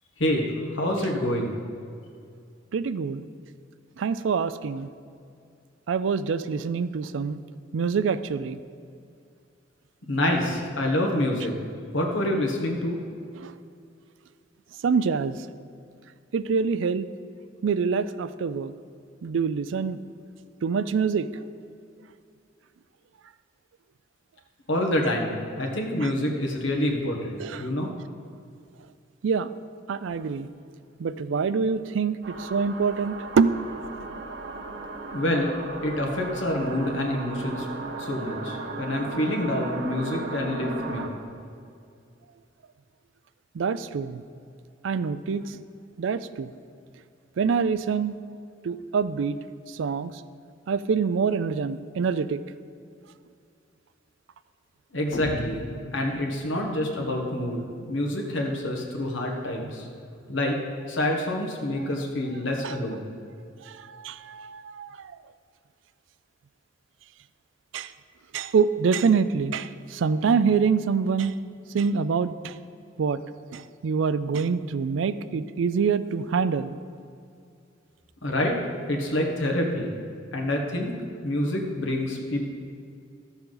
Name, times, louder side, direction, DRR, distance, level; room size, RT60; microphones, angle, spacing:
voice 1, 0.2-1.5 10.1-11.5 11.9-13.0 24.7-27.9 35.1-35.5 35.8-37.7 38.0-41.1 54.9-55.6 55.9-59.9 60.3-60.6 60.9-63.1 78.2-78.6 78.9-79.9 80.3-80.9 81.2-82.4, left 1 dB, 85° left, 1 dB, 1.5 m, -27 dB
voice 2, 2.7-3.2 4.0-4.9 5.9-7.4 7.7-8.6 13.4-13.5 14.8-15.4 16.3-17.1 17.6-18.7 19.2-20.0 20.6-21.3 26.0-26.1 27.4-27.7 29.2-29.5 29.9-30.5 31.0-33.6 43.5-44.2 44.8-45.6 46.0-46.5 47.4-48.2 48.6-49.4 49.7-50.1 50.7-52.4 62.6-62.7 63.7-65.1 67.7-67.9 68.3-71.3 71.7-72.5 73.0-73.2 73.5-76.8, right 5 dB, 80° right, 14 dB, 0.4 m, -25 dB
sound 1, 32.2-41.1, right 2 dB, 65° right, 0.8 m, -36 dB
sound 2, 55.1-56.7, left 2 dB, 60° left, 0.6 m, -35 dB
12.5 x 7.1 x 3.9 m, 2.4 s
head